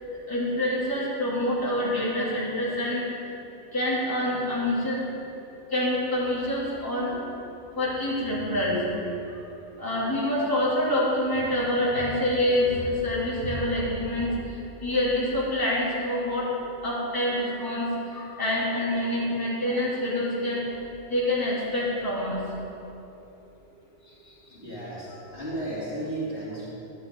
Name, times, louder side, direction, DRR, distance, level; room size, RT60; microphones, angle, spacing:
voice 1, 0.3-3.0 3.7-5.0 5.7-7.1 7.8-8.8 9.8-14.3 14.8-16.5 16.8-20.6 21.1-22.4, left 1 dB, 15° left, -10 dB, 3.1 m, -26 dB
voice 2, 24.5-25.1 25.3-26.7, right 1 dB, 45° left, -10 dB, 3.3 m, -33 dB
12.0 x 11.5 x 3.9 m, 2.9 s
omnidirectional pair, 1.4 m